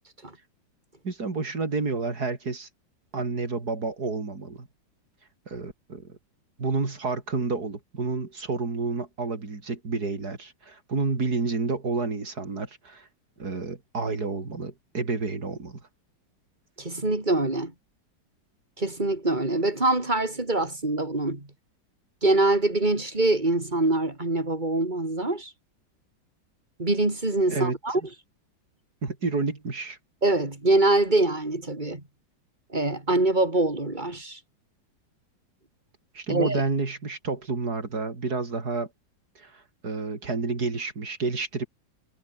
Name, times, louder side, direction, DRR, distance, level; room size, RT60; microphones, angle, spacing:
voice 1, 1.0-2.7 3.1-4.7 5.5-6.2 6.6-13.1 13.4-15.8 27.5-27.8 29.0-30.0 36.1-38.9 39.4-41.7, right 4 dB, 55° right, 4.0 m, -30 dB
voice 2, 16.8-17.7 18.8-21.5 22.2-25.5 26.8-28.0 30.2-32.0 32.7-34.4 36.3-36.6, right 2 dB, 25° right, 4.1 m, -24 dB
omnidirectional pair, 2.0 m